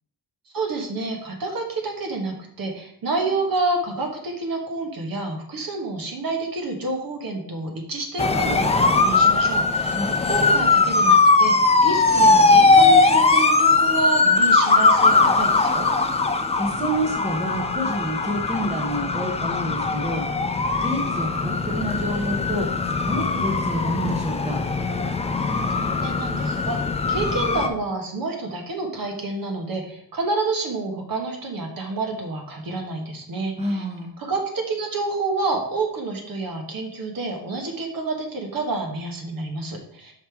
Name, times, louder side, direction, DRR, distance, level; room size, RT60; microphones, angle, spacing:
voice 1, 0.5-10.0 10.2-15.9 25.7-33.8 34.2-40.1, right 3 dB, 60° right, 2 dB, 1.4 m, -28 dB
sound 1, 8.2-27.7, left 3 dB, 15° left, 0.4 m, -20 dB
voice 2, 16.6-20.2 20.8-22.7 23.0-24.6 33.6-34.1, equal, 15° right, 1 dB, 1.0 m, -28 dB
5.7 x 5.1 x 4.6 m, 0.66 s
wide cardioid pair, 160°, 39 cm